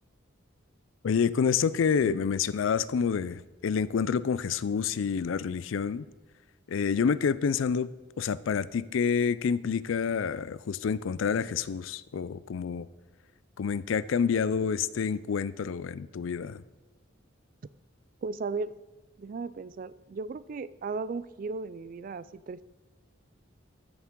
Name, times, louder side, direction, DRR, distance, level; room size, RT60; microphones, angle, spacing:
voice 1, 1.0-6.1 6.7-7.9 8.2-12.8 13.6-16.6, left 6 dB, 80° left, 17 dB, 0.4 m, -28 dB
voice 2, 18.2-18.7 19.2-22.6, right 4 dB, 45° right, 17 dB, 0.3 m, -36 dB
14.0 x 7.1 x 3.7 m, 1.2 s
head